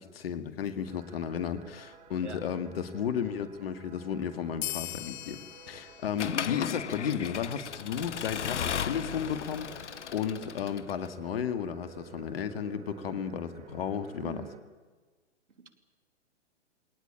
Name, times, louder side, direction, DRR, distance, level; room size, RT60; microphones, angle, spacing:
voice 1, 0.0-5.4 5.7-14.4, left 8 dB, 55° left, 9 dB, 2.1 m, -34 dB
sound 1, 0.8-14.6, right 8 dB, 20° right, 2.1 m, -53 dB
sound 2, 4.6-7.6, left 16 dB, 40° left, 0.9 m, -41 dB
Accelerating revving vroom / Mechanisms, 6.2-11.1, left 8 dB, 80° left, 1.0 m, -35 dB
voice 2, 14.2-14.5 15.6-15.7, right 4 dB, 80° right, 7 dB, 3.1 m, -42 dB
23.0 x 18.5 x 8.9 m, 1.4 s
hypercardioid pair, 130°, 35 cm